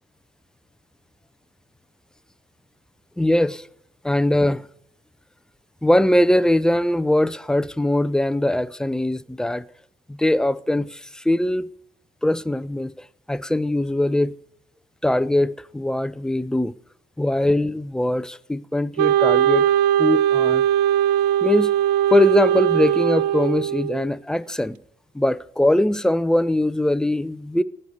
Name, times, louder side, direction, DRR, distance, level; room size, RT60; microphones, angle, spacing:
voice 1, 3.2-3.7 4.0-4.6 5.8-9.7 10.1-11.7 12.2-14.3 15.0-16.7 17.2-19.7 20.0-20.7 21.4-21.7 22.1-24.8 25.1-27.6, left 1 dB, 5° left, 0.5 m, -21 dB
Wind instrument woodwind instrument, 19.0-24.1, right 11 dB, 85° right, 0.6 m, -19 dB
18.0 x 6.6 x 8.1 m
cardioid pair, 110°, 17 cm